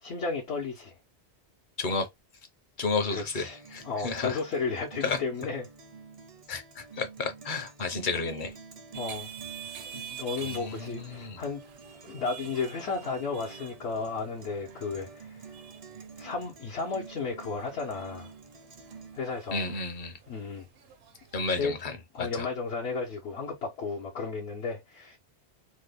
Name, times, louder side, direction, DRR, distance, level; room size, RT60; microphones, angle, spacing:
voice 1, 0.0-0.9 3.1-3.6 3.8-5.7 8.9-9.3 9.6-11.6 12.0-15.4 16.2-18.3 19.1-19.7 20.3-20.7 21.5-21.7 22.1-25.2, left 4 dB, 80° left, 1.1 m, -34 dB
voice 2, 2.8-4.4 5.0-5.2 6.5-8.5 10.4-11.4 19.5-20.2 21.3-22.5, left 4 dB, 50° left, 0.8 m, -32 dB
Guitar, 3.2-19.2, right 5 dB, 45° right, 0.5 m, -48 dB
sound 1, 8.9-21.6, right 8 dB, 70° right, 0.8 m, -48 dB
3.1 x 2.1 x 3.3 m
omnidirectional pair, 1.1 m